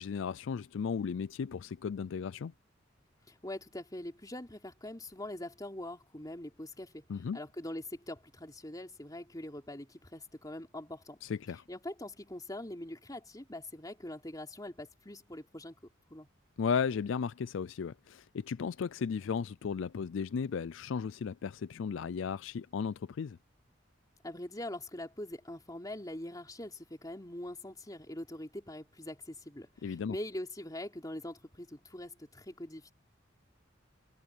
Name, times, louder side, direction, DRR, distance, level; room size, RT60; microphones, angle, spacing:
voice 1, 0.0-2.5 7.1-7.4 11.2-11.6 16.6-23.4 29.8-30.2, left 6 dB, 70° left, 0.4 m, -35 dB
voice 2, 3.3-7.0 7.3-11.2 11.7-15.7 16.1-16.3 24.2-32.9, left 1 dB, 20° left, 3.5 m, -43 dB
head